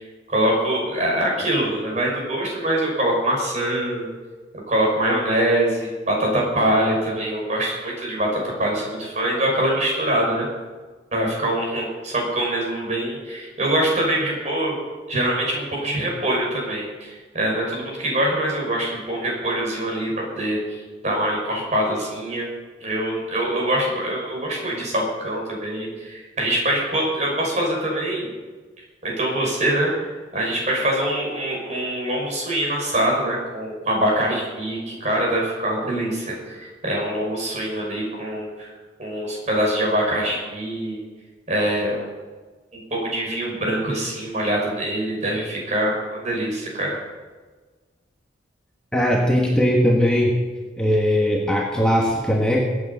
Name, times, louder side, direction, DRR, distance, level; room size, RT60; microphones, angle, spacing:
voice 1, 0.3-4.1 4.7-10.5 11.1-14.8 15.1-20.8 21.0-22.5 22.8-28.3 29.0-38.7 39.0-41.0 41.5-42.0 42.7-47.0, right 1 dB, 35° right, -2 dB, 5.8 m, -24 dB
voice 2, 48.9-50.4 50.8-52.6, equal, 5° left, -2 dB, 1.5 m, -19 dB
22.5 x 9.0 x 5.6 m, 1.4 s
head